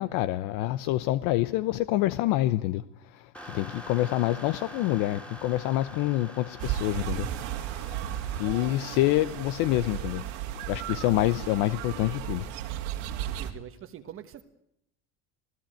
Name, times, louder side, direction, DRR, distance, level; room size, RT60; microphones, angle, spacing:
voice 1, 0.0-7.3 8.4-12.5, left 15 dB, 70° left, 0.8 m, -27 dB
sound 1, 3.3-10.4, equal, 5° left, 2.5 m, -46 dB
sound 2, 6.6-13.5, right 11 dB, 85° right, 2.6 m, -34 dB
voice 2, 13.2-14.4, right 10 dB, 40° right, 1.3 m, -44 dB
27.5 x 16.5 x 9.2 m
cardioid pair, 150°, 34 cm